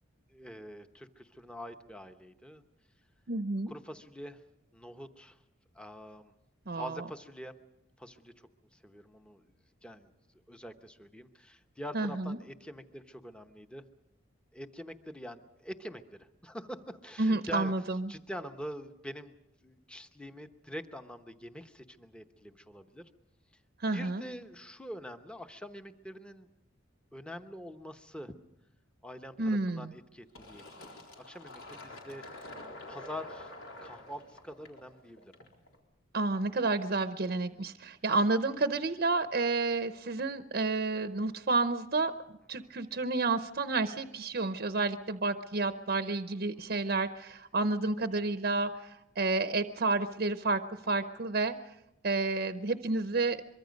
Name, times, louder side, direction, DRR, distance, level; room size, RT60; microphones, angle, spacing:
voice 1, 0.3-2.6 3.7-4.4 4.7-5.4 5.7-6.3 6.7-7.6 8.0-9.5 9.8-10.1 10.5-13.8 14.5-17.7 18.1-19.4 19.6-23.1 23.5-23.6 23.9-26.5 27.1-28.3 29.0-30.8 31.2-32.4 32.9-33.5 33.8-35.3 38.2-38.3 42.6-42.7 46.6-46.7 51.1-51.2, equal, 5° left, 7 dB, 0.9 m, -45 dB
voice 2, 3.3-3.7 6.7-7.0 11.9-12.4 17.2-18.1 23.8-24.2 29.4-29.9 36.1-42.1 42.5-50.6 50.9-51.5 52.0-53.4, right 3 dB, 50° right, 9 dB, 0.7 m, -30 dB
Fill (with liquid), 30.3-35.7, left 1 dB, 85° left, 3.9 m, -47 dB
24.0 x 23.0 x 5.2 m, 0.90 s
head